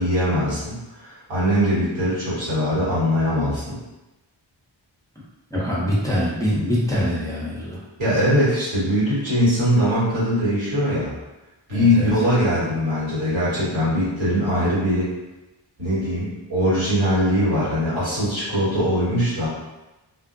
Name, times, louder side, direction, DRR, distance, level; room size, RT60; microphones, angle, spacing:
voice 1, 0.0-3.8 8.0-11.1 11.7-15.1 15.8-19.5, equal, 80° right, -10 dB, 1.4 m, -21 dB
voice 2, 5.5-7.8 11.7-12.1, equal, 10° left, -7 dB, 0.6 m, -24 dB
2.6 x 2.0 x 2.5 m, 1.0 s
wide cardioid pair, 70°, 45 cm